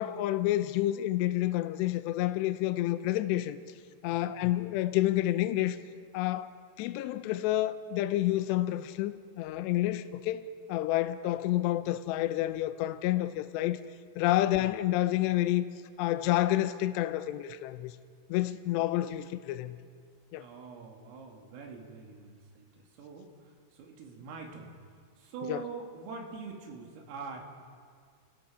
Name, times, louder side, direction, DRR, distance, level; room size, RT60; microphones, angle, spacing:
voice 1, 0.0-3.6 4.0-5.8 6.1-6.5 6.8-13.8 14.2-15.6 16.0-17.9 18.3-19.8 20.3-20.4 25.5-25.6, left 14 dB, 90° left, 2.5 m, -29 dB
voice 2, 20.3-24.8 25.2-27.4, right 5 dB, 90° right, 5.1 m, -44 dB
29.0 x 18.5 x 5.7 m
omnidirectional pair, 5.8 m